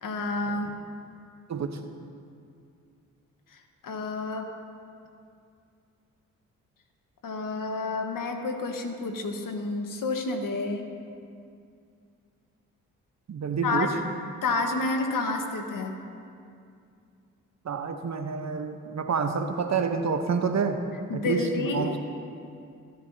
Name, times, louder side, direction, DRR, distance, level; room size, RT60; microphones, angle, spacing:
voice 1, 0.0-0.7 3.8-4.5 7.2-10.8 13.6-13.9 14.4-15.9 21.1-21.9, left 3 dB, 60° left, 4 dB, 1.5 m, -29 dB
voice 2, 13.3-13.9 17.6-20.8 21.1-21.9, right 5 dB, 45° right, 6 dB, 1.1 m, -28 dB
26.0 x 9.4 x 2.8 m, 2.4 s
hypercardioid pair, 45°, 37 cm